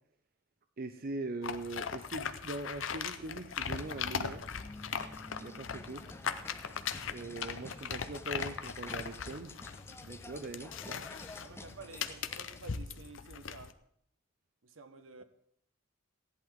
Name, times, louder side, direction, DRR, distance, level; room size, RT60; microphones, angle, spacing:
voice 1, 0.8-4.5 5.4-6.0 7.1-9.6 10.0-11.1, right 2 dB, 45° right, 7 dB, 0.6 m, -41 dB
sound 1, 1.4-13.7, left 7 dB, 65° left, 0.6 m, -40 dB
sound 2, 3.5-12.6, left 2 dB, 10° left, 0.5 m, -50 dB
voice 2, 11.4-13.8 14.6-15.2, right 3 dB, 65° right, 10 dB, 0.9 m, -51 dB
15.5 x 11.0 x 3.6 m, 0.67 s
head